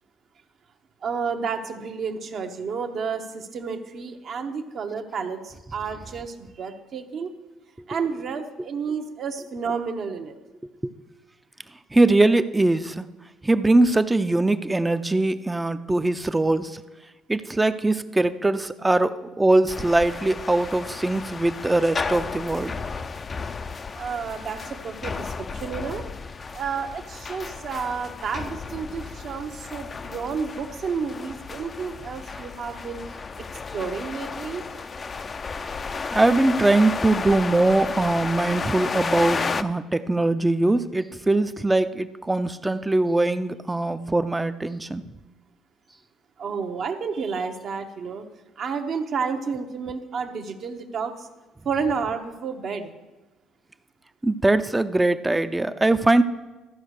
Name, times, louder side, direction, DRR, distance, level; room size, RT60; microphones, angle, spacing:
voice 1, 1.0-7.3 7.9-10.3 23.9-26.0 26.5-33.5 33.7-34.6 46.4-48.3 48.6-51.3 51.6-52.9, right 5 dB, 55° right, 5 dB, 1.0 m, -31 dB
voice 2, 11.9-13.0 13.4-16.8 17.3-22.8 36.1-45.1 54.2-56.2, right 2 dB, 15° right, 12 dB, 0.5 m, -21 dB
sound 1, 19.7-39.6, left 4 dB, 35° left, 0.4 m, -33 dB
13.5 x 5.0 x 6.4 m, 1.1 s
supercardioid pair, 80°, 0 cm